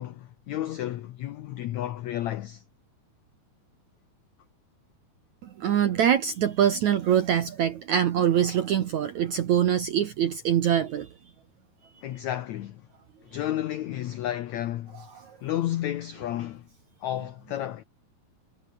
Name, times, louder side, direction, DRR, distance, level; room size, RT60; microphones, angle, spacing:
voice 1, 0.0-2.6 12.0-12.9 13.2-15.1 15.4-16.7 17.0-17.8, left 12 dB, 80° left, 1.6 m, -32 dB
voice 2, 5.4-11.1 15.2-15.4, right 9 dB, 60° right, 2.1 m, -24 dB
omnidirectional pair, 4.5 m